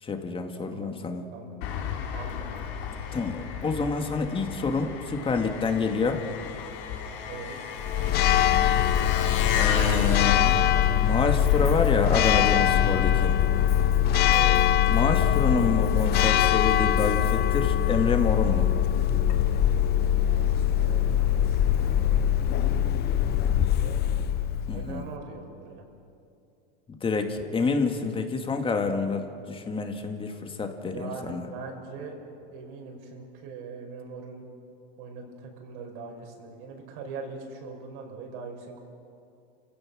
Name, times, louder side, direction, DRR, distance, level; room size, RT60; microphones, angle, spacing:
voice 1, 0.0-1.2 3.1-6.2 9.6-10.6 10.9-13.4 14.9-18.7 24.7-25.0 26.9-31.5, left 4 dB, 20° left, 5 dB, 2.2 m, -28 dB
voice 2, 0.7-1.0 1.3-1.7 2.1-2.7 7.2-7.7 14.3-14.7 19.6-22.7 23.2-23.4 23.6-24.0 24.7-25.8 30.7-32.2 32.5-34.5 35.0-38.8, right 4 dB, 60° right, 2 dB, 5.3 m, -42 dB
Engine, 1.6-13.8, left 7 dB, 70° left, 3.1 m, -35 dB
Church bell, 7.8-25.1, left 11 dB, 35° left, 0.8 m, -22 dB
29.5 x 16.0 x 6.5 m, 2.5 s
supercardioid pair, 125°, 29 cm